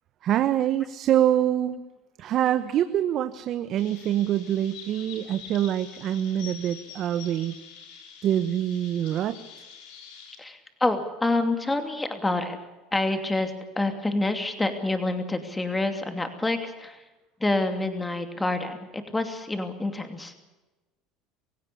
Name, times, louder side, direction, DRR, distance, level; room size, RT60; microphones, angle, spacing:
voice 1, 0.2-1.8 2.2-7.5 8.2-9.4, right 11 dB, 50° right, 10 dB, 1.2 m, -25 dB
Chirp tweet, 3.8-10.3, left 6 dB, 75° left, 5.6 m, -45 dB
voice 2, 10.4-12.6 12.9-17.0 17.4-20.3, left 2 dB, 10° left, 7 dB, 2.7 m, -27 dB
25.0 x 16.0 x 8.7 m, 1.1 s
supercardioid pair, 115°, 0 cm